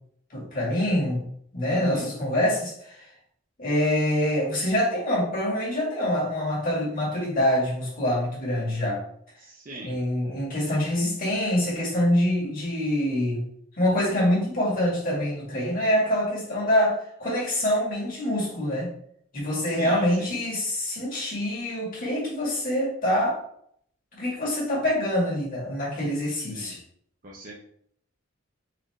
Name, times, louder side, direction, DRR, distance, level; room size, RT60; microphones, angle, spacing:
voice 1, 0.3-1.3 1.5-3.0 3.6-9.0 9.8-13.5 13.8-18.9 19.3-23.4 24.1-26.8, left 1 dB, 45° left, -5 dB, 1.6 m, -25 dB
voice 2, 1.7-2.1 9.4-10.0 19.8-20.3 26.5-26.8 27.2-27.5, right 1 dB, 40° right, -4 dB, 0.6 m, -40 dB
4.1 x 2.6 x 3.2 m, 0.66 s
head